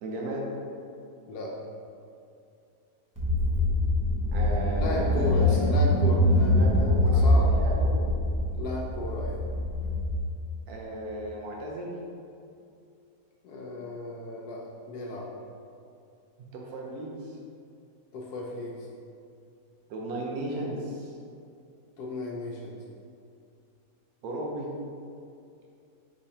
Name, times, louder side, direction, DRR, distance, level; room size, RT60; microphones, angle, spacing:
voice 1, 0.0-0.5 4.3-5.6 6.5-8.0 10.7-12.0 16.5-17.4 19.9-21.2 24.2-24.7, right 1 dB, 75° right, -2 dB, 1.1 m, -35 dB
voice 2, 1.3-1.6 4.8-7.5 8.5-9.4 13.4-15.3 18.1-18.9 22.0-22.8, left 1 dB, 85° left, -3 dB, 1.1 m, -35 dB
Car / Engine, 3.2-10.2, left 1 dB, 25° right, 0.5 m, -24 dB
5.3 x 3.3 x 2.8 m, 2.5 s
omnidirectional pair, 1.7 m